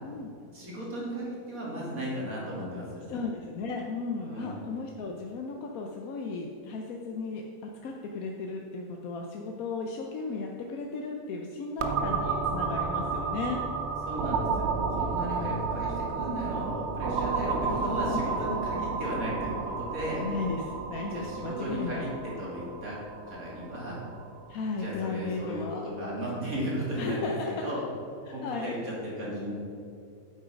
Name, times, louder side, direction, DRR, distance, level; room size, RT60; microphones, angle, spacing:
voice 1, 0.5-3.1 4.2-4.5 14.1-20.2 21.1-23.0 23.3-24.0 24.8-27.8 28.3-29.5, equal, 85° right, -5 dB, 3.1 m, -35 dB
voice 2, 3.1-7.4 7.8-13.6 17.6-18.2 20.2-22.1 24.5-25.9 27.0-27.7 28.3-28.7, left 4 dB, 85° left, 1 dB, 1.2 m, -35 dB
sound 1, 11.8-25.4, right 4 dB, 55° right, 0.9 m, -32 dB
9.0 x 8.0 x 5.1 m, 2.5 s
omnidirectional pair, 1.5 m